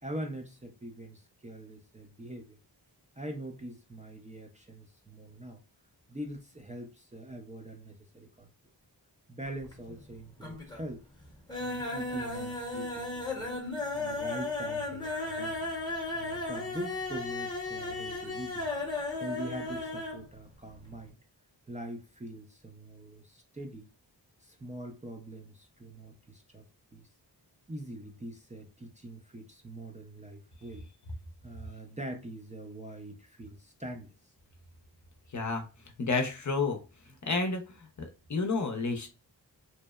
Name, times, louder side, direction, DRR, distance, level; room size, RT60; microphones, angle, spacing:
voice 1, 0.0-2.6 3.1-5.6 6.1-8.5 9.3-11.0 11.6-13.5 13.9-15.6 16.1-18.7 19.2-21.2 21.7-23.9 24.4-26.7 26.9-27.1 27.7-30.9 31.4-34.3, right 1 dB, 20° right, 2 dB, 0.4 m, -43 dB
sound 1, 9.5-10.1 10.4-10.9 11.2-20.2 20.5-20.6 20.9-21.0, left 2 dB, 10° left, 0.8 m, -35 dB
voice 2, 35.3-35.6 36.0-36.8 37.3-37.6 38.0-39.1, left 3 dB, 45° left, 4 dB, 0.6 m, -30 dB
2.7 x 2.0 x 2.2 m, 0.31 s
cardioid pair, 55°, 43 cm